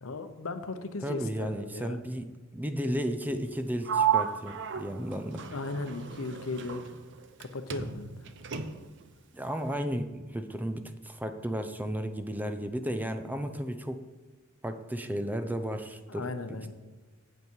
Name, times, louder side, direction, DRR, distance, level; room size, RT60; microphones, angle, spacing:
voice 1, 0.0-2.0 5.5-6.8 7.4-8.3 16.1-16.7, left 3 dB, 80° left, 9 dB, 0.8 m, -37 dB
voice 2, 1.0-5.5 9.3-14.0 14.6-16.7, equal, 10° right, 8 dB, 0.5 m, -34 dB
Sliding door, 3.8-7.4 7.7-9.0, right 8 dB, 60° right, 0.7 m, -32 dB
8.4 x 8.1 x 4.6 m, 1.3 s
head